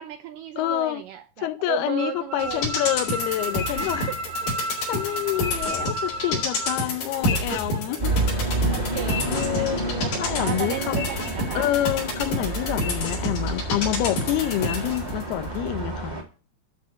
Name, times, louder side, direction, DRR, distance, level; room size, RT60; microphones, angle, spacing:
voice 1, 0.0-2.6 4.1-4.2 6.8-8.0 8.7-9.3 9.5-11.7, right 10 dB, 75° right, 2.0 m, -35 dB
voice 2, 0.6-1.0 1.4-4.1 4.9-8.1 9.3-9.8 10.2-11.1 11.6-16.2, left 13 dB, 80° left, 2.7 m, -27 dB
sound 1, 2.0-6.8, right 2 dB, 40° right, 1.7 m, -32 dB
sound 2, 2.4-15.2 15.6-15.7, left 2 dB, 65° left, 5.5 m, -29 dB
sound 3, 8.0-16.2, right 2 dB, 15° right, 1.4 m, -29 dB
12.0 x 4.3 x 6.3 m
omnidirectional pair, 4.6 m